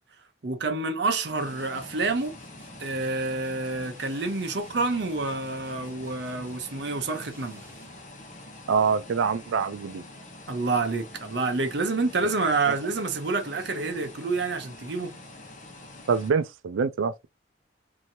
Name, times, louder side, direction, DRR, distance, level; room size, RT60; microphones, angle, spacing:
voice 1, 0.4-2.3 2.8-7.6 10.5-15.1, right 3 dB, 60° right, 0.7 m, -28 dB
sound 1, 1.3-16.3, left 2 dB, 40° left, 0.7 m, -46 dB
sound 2, 1.6-8.1, right 1 dB, 15° right, 1.2 m, -53 dB
voice 2, 8.7-10.0 12.7-12.8 16.1-17.3, right 5 dB, 85° right, 0.4 m, -25 dB
3.0 x 2.7 x 2.7 m
head